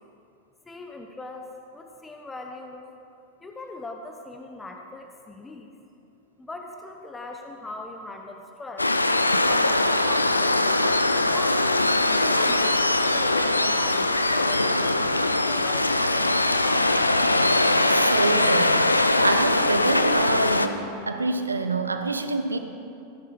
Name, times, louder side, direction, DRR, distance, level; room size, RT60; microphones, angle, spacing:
voice 1, 0.6-2.9 3.4-5.7 6.4-8.9 9.4-10.6 11.3-16.9, left 2 dB, 10° left, 3 dB, 0.9 m, -40 dB
Waves surf, 8.8-20.7, left 2 dB, 85° left, 0.5 m, -21 dB
voice 2, 17.9-22.6, right 3 dB, 80° right, 7 dB, 0.9 m, -27 dB
15.5 x 10.5 x 4.9 m, 2.6 s
figure-of-eight pair, 90°, 0 cm